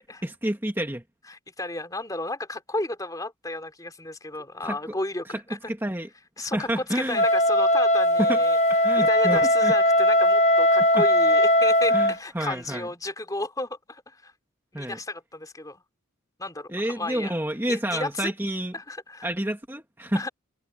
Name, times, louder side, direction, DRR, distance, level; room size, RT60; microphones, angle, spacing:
voice 1, 0.2-1.0 4.6-5.0 5.7-6.1 6.4-7.3 8.2-8.4 8.8-9.7 10.9-11.0 11.9-12.9 14.7-15.0 16.7-18.8 19.2-20.3, right 1 dB, 10° right, 1.9 m, -29 dB
voice 2, 1.3-5.6 6.4-8.6 8.9-14.3 14.7-15.8 16.4-17.4 17.6-18.3 18.7-19.3 20.1-20.3, left 2 dB, 15° left, 3.2 m, -33 dB
Wind instrument woodwind instrument, 7.1-12.1, left 1 dB, 35° left, 1.4 m, -19 dB
head